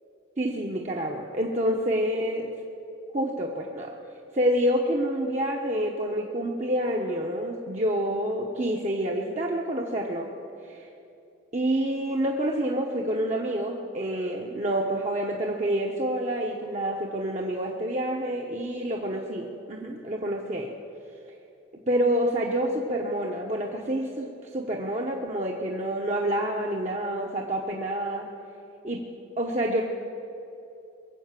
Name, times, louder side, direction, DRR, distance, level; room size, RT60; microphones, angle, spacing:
voice 1, 0.4-2.5 3.1-3.9 4.3-10.3 10.6-10.9 11.5-20.7 21.9-28.3 28.8-29.0 29.4-29.8, right 1 dB, 35° right, -1 dB, 0.9 m, -28 dB
22.0 x 7.8 x 7.5 m, 2.8 s
head